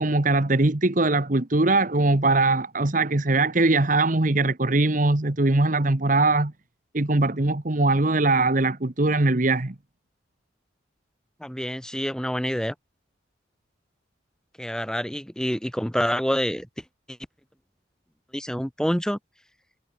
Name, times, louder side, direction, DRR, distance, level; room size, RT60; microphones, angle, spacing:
voice 1, 0.0-6.5 6.9-9.7, right 2 dB, 40° right, 1.2 m, -21 dB
voice 2, 11.4-12.7 14.6-16.7 17.1-17.2 18.3-19.2, equal, 5° left, 2.1 m, -27 dB
head